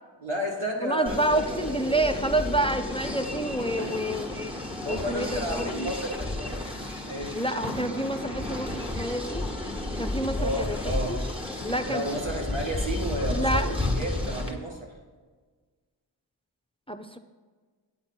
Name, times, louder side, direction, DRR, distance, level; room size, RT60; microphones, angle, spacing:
voice 1, 0.2-1.4 3.8-4.0 4.8-6.7 7.1-7.4 10.4-11.2 11.9-14.9, equal, 75° right, 0 dB, 2.2 m, -32 dB
voice 2, 0.8-4.5 4.9-5.9 7.3-9.5 10.0-11.2 11.6-12.0 13.3-13.7 16.9-17.2, right 1 dB, 10° left, 7 dB, 0.6 m, -28 dB
sound 1, 1.1-14.5, left 2 dB, 10° right, 1.5 m, -32 dB
9.5 x 8.8 x 4.4 m, 1.4 s
wide cardioid pair, 50°, 48 cm